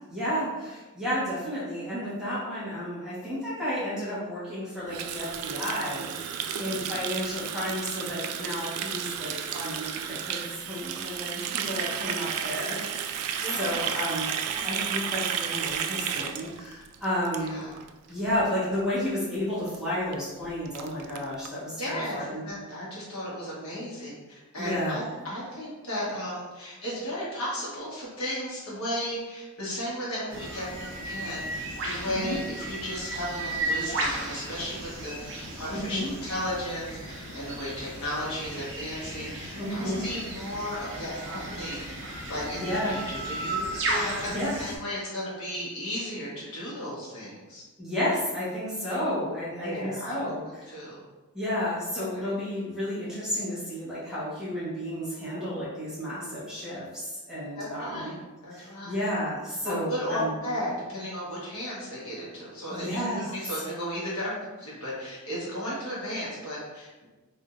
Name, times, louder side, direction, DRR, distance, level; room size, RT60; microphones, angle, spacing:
voice 1, 0.0-13.2 13.5-14.3 14.6-17.7 18.1-22.4 24.6-25.0 32.1-32.4 35.7-36.1 39.6-40.0 42.5-43.0 44.2-44.6 47.8-50.7 51.3-58.1 58.5-60.3 62.7-63.3, equal, 5° right, -11 dB, 1.3 m, -32 dB
Water tap faucet, 4.9-17.9 18.2-18.4 18.7-19.1 19.3-19.4 19.7-19.8 20.1-20.2 20.4-21.5, right 8 dB, 90° right, 0.3 m, -33 dB
voice 2, 6.5-6.9 13.4-14.0 14.5-14.6 17.4-17.7 21.8-41.9 42.3-44.3 44.6-47.6 49.6-50.1 50.4-51.0 57.6-58.1 58.4-59.0 59.6-64.3 64.6-67.1, equal, 75° left, -7 dB, 1.5 m, -35 dB
sound 1, 30.3-44.8, right 2 dB, 60° right, 0.7 m, -35 dB
3.6 x 3.4 x 2.6 m, 1.2 s
head